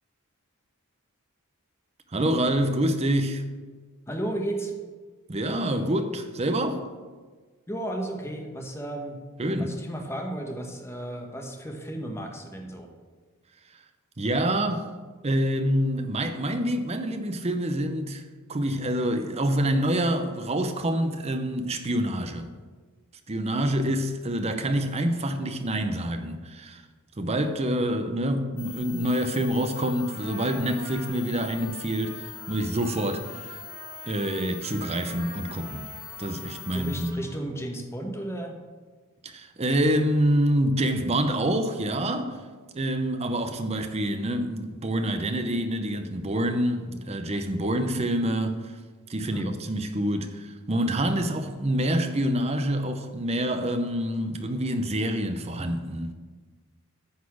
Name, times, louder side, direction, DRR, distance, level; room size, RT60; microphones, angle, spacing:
voice 1, 2.1-3.4 5.3-6.8 9.4-9.7 14.2-14.9 15.2-18.2 18.5-22.5 23.3-26.8 27.2-33.6 34.1-35.9 36.2-37.1 39.2-42.4 42.7-48.7 49.1-56.1, right 1 dB, 30° right, 0.6 m, -26 dB
voice 2, 4.1-4.7 7.7-9.2 9.6-12.9 36.7-38.6 49.2-49.5, right 1 dB, 10° left, 1.0 m, -34 dB
sound 1, 28.6-37.1, left 9 dB, 60° left, 0.6 m, -43 dB
Trumpet, 29.7-37.6, right 2 dB, 90° right, 2.3 m, -46 dB
9.5 x 4.2 x 7.1 m
head